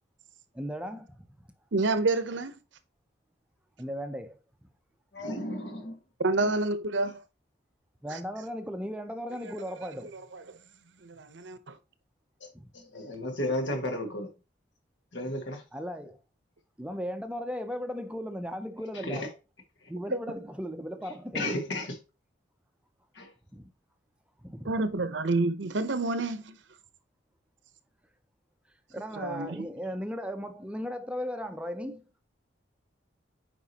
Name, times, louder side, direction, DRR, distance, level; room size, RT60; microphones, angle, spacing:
voice 1, 0.5-1.5 3.8-4.4 8.0-10.1 12.5-12.7 15.7-16.2 16.8-19.3 19.9-21.6 23.5-23.7 24.4-24.7 28.9-32.2, equal, 5° right, 0.6 m, -36 dB
voice 2, 1.7-2.5 6.2-7.2 8.1-8.2 10.1-10.6 11.0-11.7 24.6-26.6 29.2-29.7, right 2 dB, 75° right, 0.8 m, -29 dB
voice 3, 5.1-6.0 6.4-6.5 12.4-12.5 12.7-14.3 15.1-15.6 19.0-19.3 21.3-22.0 23.2-23.3, left 1 dB, 70° left, 1.8 m, -33 dB
8.5 x 5.0 x 2.9 m
head